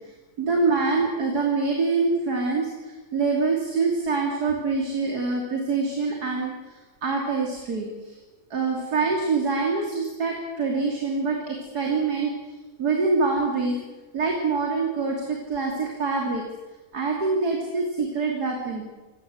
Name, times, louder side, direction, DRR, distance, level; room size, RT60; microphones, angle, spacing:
voice 1, 0.0-8.2 8.5-12.3 12.8-13.8 14.1-16.4 16.9-18.8, right 4 dB, 80° right, 0 dB, 3.5 m, -25 dB
25.5 x 18.0 x 7.9 m, 1.2 s
omnidirectional pair, 1.7 m